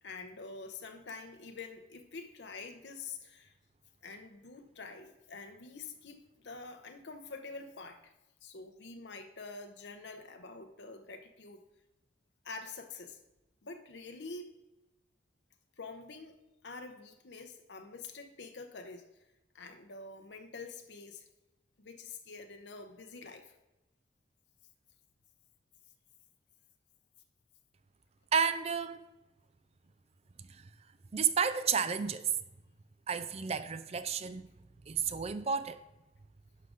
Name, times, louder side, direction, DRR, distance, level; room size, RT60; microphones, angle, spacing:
voice 1, 0.0-3.5 4.0-8.1 8.4-11.6 12.4-13.2 13.6-14.5 15.8-16.4 16.6-19.1 19.5-21.3 21.8-23.5, left 4 dB, 70° left, 0.8 m, -46 dB
voice 2, 28.3-29.0 31.1-32.3 33.1-34.5 34.9-35.8, right 6 dB, 35° right, 0.4 m, -31 dB
11.0 x 5.0 x 3.9 m
head